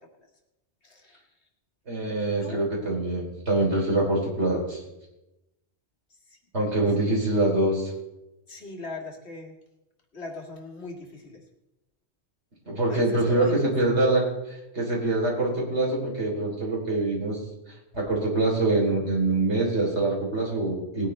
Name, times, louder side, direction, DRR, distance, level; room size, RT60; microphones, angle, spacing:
voice 1, 0.8-1.2 2.4-2.6 8.5-9.5 10.1-11.4 12.9-13.5, left 2 dB, 75° left, 1 dB, 2.3 m, -39 dB
voice 2, 1.9-4.8 6.5-7.9 12.7-17.4 17.9-21.1, right 2 dB, 85° right, -2 dB, 3.7 m, -25 dB
19.5 x 9.9 x 3.2 m, 0.96 s
omnidirectional pair, 1.1 m